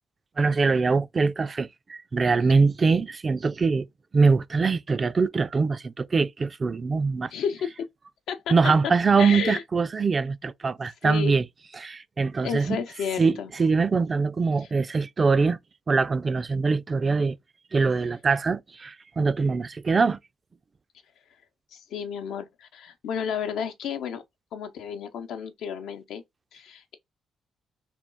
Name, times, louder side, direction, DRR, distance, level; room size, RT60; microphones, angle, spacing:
voice 1, 0.4-3.9 4.1-7.3 8.5-11.4 11.8-12.8 13.2-15.6 15.9-17.4 17.7-20.2, right 4 dB, 35° right, 0.4 m, -23 dB
voice 2, 7.3-7.9 8.3-8.7 9.2-9.6 11.0-11.4 12.4-13.5 21.7-24.2 24.5-26.2 26.5-26.9, left 7 dB, 80° left, 0.7 m, -32 dB
3.5 x 2.3 x 4.4 m
cardioid pair, 90°, 0 cm